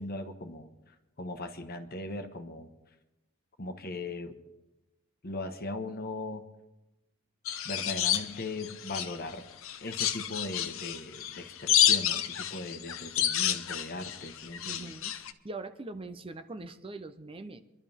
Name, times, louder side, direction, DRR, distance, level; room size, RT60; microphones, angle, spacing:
voice 1, 0.0-2.7 3.6-4.4 5.2-6.5 7.6-9.5 9.8-14.9, left 2 dB, 45° left, 7 dB, 1.3 m, -39 dB
sound 1, 7.5-9.3 9.6-15.3, left 10 dB, 65° left, 0.8 m, -29 dB
voice 2, 14.6-17.6, right 2 dB, 25° right, 9 dB, 0.6 m, -42 dB
26.0 x 12.0 x 3.6 m, 0.98 s
head